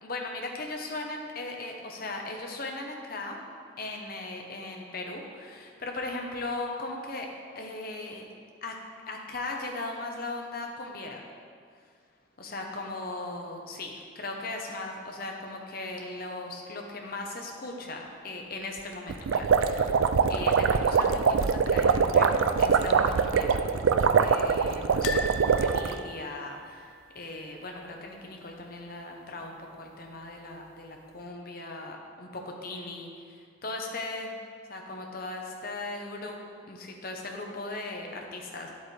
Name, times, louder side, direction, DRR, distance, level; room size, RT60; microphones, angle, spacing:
voice 1, 0.0-3.4 3.8-7.3 7.5-8.2 8.6-8.8 9.1-11.2 12.4-20.0 20.3-23.6 24.2-34.3 34.7-36.4 36.7-38.7, left 2 dB, 45° left, 1 dB, 1.0 m, -38 dB
sound 1, 19.1-25.9, right 5 dB, 75° right, 0.4 m, -23 dB
sound 2, 25.0-28.1 28.3-28.6 28.8-28.9 30.1-30.7 31.2-31.3, left 2 dB, 80° left, 0.5 m, -39 dB
10.0 x 7.9 x 3.4 m, 2.1 s
head